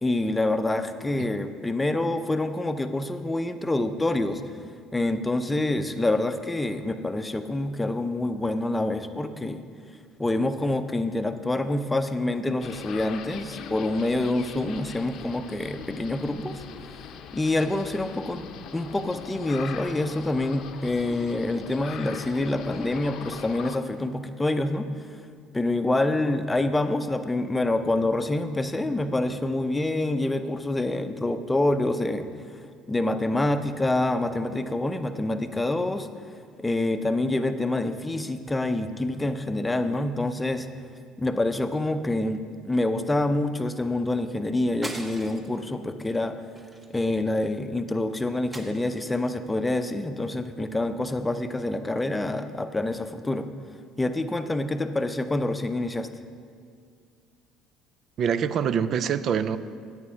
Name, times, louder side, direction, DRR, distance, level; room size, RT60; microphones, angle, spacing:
voice 1, 0.0-4.4 4.9-9.6 10.2-16.6 17.3-18.4 18.7-24.9 25.5-32.3 32.9-36.1 36.6-40.7 41.2-46.4 46.9-53.5 54.0-56.1, left 2 dB, 15° left, 8 dB, 0.7 m, -26 dB
sound 1, 12.6-23.8, left 7 dB, 65° left, 0.7 m, -41 dB
sound 2, 44.8-45.6 46.0-46.2 46.6-47.5 48.5-49.3, right 1 dB, 20° right, 1.1 m, -41 dB
voice 2, 58.2-59.6, right 7 dB, 55° right, 14 dB, 0.4 m, -25 dB
9.5 x 8.1 x 5.8 m, 2.2 s
supercardioid pair, 85°, 0 cm